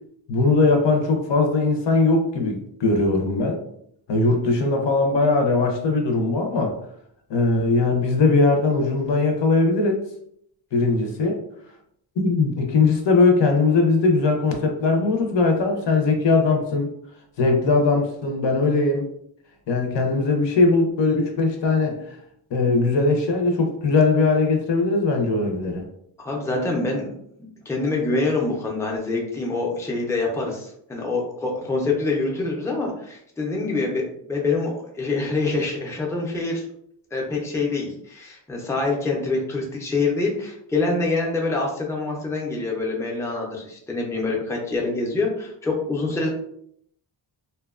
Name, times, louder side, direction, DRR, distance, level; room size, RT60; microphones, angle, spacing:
voice 1, 0.3-3.6 4.1-6.8 7.3-10.1 10.7-11.4 12.2-16.9 17.4-19.1 19.7-22.0 22.5-25.8, left 3 dB, 70° left, 3 dB, 0.6 m, -20 dB
voice 2, 26.2-27.1 27.7-36.6 37.1-46.3, left 3 dB, 5° left, -1 dB, 0.5 m, -25 dB
2.7 x 2.2 x 2.3 m, 0.69 s
wide cardioid pair, 110°, 45 cm